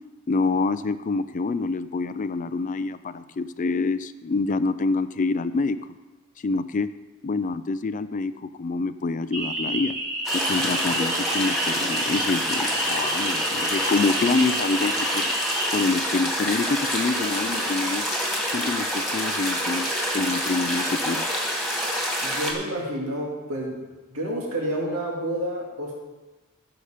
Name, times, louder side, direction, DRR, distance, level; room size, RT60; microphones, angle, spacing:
voice 1, 0.3-5.8 6.4-6.9 7.2-10.0 10.3-15.4 15.7-18.1 18.5-19.9 20.1-21.2, left 3 dB, 35° left, 13 dB, 0.4 m, -26 dB
sound 1, 9.3-15.8, right 1 dB, 35° right, 1.8 m, -29 dB
sound 2, 10.2-22.5, equal, ahead, 2.2 m, -27 dB
voice 2, 22.2-23.8 24.1-26.0, right 1 dB, 75° right, -2 dB, 2.2 m, -29 dB
15.0 x 7.0 x 5.0 m, 1.2 s
head